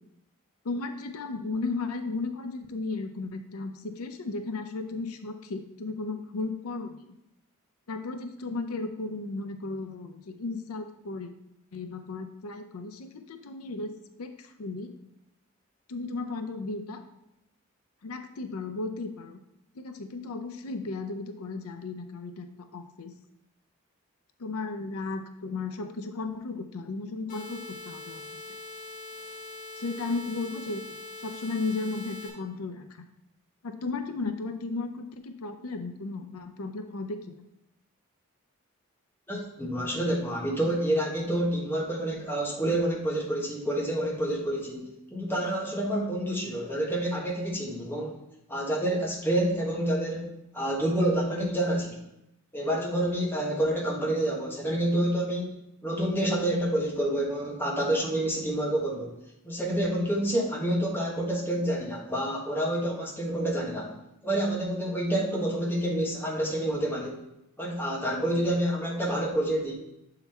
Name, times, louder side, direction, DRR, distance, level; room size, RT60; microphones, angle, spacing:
voice 1, 0.6-7.1 7.9-11.3 11.7-14.9 15.9-17.0 18.0-19.4 19.7-23.1 24.4-28.3 29.8-33.1 33.6-37.4, left 3 dB, 85° left, 7 dB, 0.6 m, -35 dB
sound 1, 27.3-32.3, left 2 dB, 35° left, 1.3 m, -42 dB
voice 2, 39.3-48.2 48.5-52.0 52.5-55.6 55.8-59.1 59.4-63.9 64.2-67.2 67.6-69.7, right 1 dB, 10° left, -3 dB, 1.2 m, -28 dB
7.0 x 3.9 x 4.3 m, 0.84 s
head